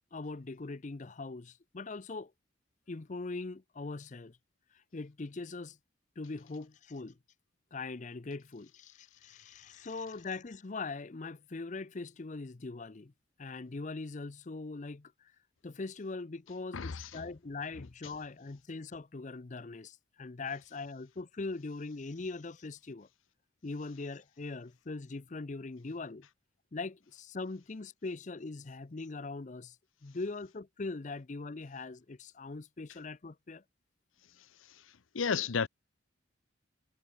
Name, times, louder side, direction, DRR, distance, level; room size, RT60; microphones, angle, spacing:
voice 1, 0.1-2.3 2.9-4.4 4.9-5.8 6.2-7.2 7.7-13.1 13.4-15.3 15.6-23.1 23.6-26.3 26.7-29.8 30.0-33.6, left 3 dB, 40° left, 0.6 m, -41 dB
voice 2, 16.7-17.1 35.1-35.7, left 6 dB, 90° left, 0.7 m, -31 dB
head